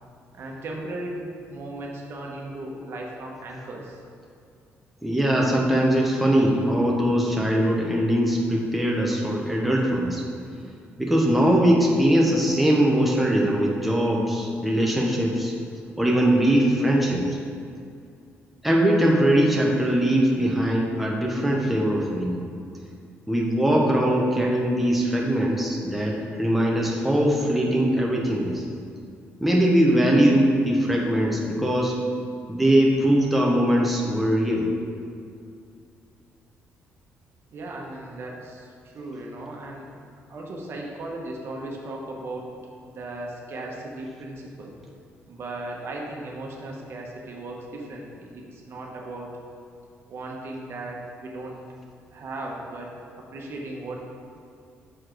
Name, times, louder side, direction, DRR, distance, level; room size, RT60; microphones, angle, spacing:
voice 1, 0.3-4.0 37.5-39.9 40.3-42.5 42.8-44.7 45.3-49.3 50.1-51.6 52.1-54.0, right 2 dB, 55° right, -1 dB, 1.1 m, -36 dB
voice 2, 5.0-10.2 11.0-15.5 16.0-17.4 18.6-22.4 23.3-28.6 29.4-31.9 32.5-34.7, right 1 dB, ahead, -2 dB, 0.9 m, -21 dB
6.3 x 4.7 x 4.5 m, 2.3 s
cardioid pair, 100°, 5 cm